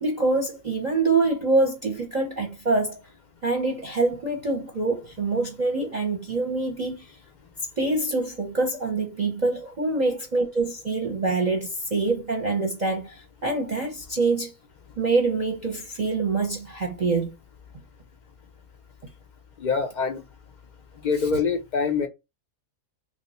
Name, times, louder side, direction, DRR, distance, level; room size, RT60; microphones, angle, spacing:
voice 1, 0.0-3.0 3.4-7.1 7.8-14.5 15.0-17.3, right 3 dB, 40° right, 0.7 m, -25 dB
voice 2, 19.6-20.5 20.9-22.1, left 5 dB, 55° left, 0.5 m, -26 dB
3.0 x 2.0 x 4.1 m
omnidirectional pair, 1.4 m